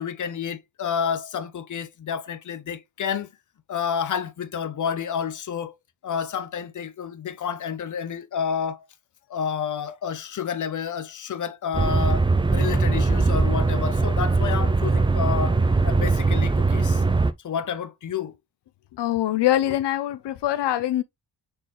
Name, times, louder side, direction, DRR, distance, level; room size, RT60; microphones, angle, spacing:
voice 1, 0.0-3.3 3.7-5.7 6.0-8.8 9.3-15.6 15.8-17.0 17.4-18.4, left 7 dB, 50° left, 0.7 m, -29 dB
sound 1, 11.7-17.3, right 3 dB, 15° right, 0.3 m, -21 dB
voice 2, 19.0-21.0, left 13 dB, 85° left, 0.6 m, -23 dB
4.4 x 3.7 x 3.1 m
wide cardioid pair, 110°, 40 cm